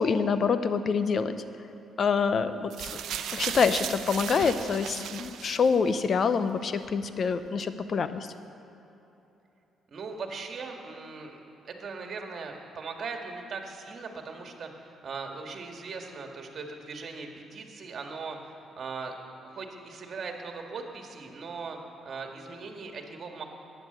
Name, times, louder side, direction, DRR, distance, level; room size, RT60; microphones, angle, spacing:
voice 1, 0.0-1.3 2.0-3.0 3.3-8.3, left 5 dB, 50° left, 11 dB, 0.7 m, -26 dB
sound 1, 2.7-6.0 6.8-6.9, right 9 dB, 75° right, 0.7 m, -36 dB
voice 2, 9.9-11.4 11.6-19.1 19.5-21.8 22.0-23.4, right 4 dB, 55° right, 3 dB, 1.8 m, -39 dB
12.5 x 9.6 x 8.0 m, 3.0 s
cardioid pair, 90°, 0 cm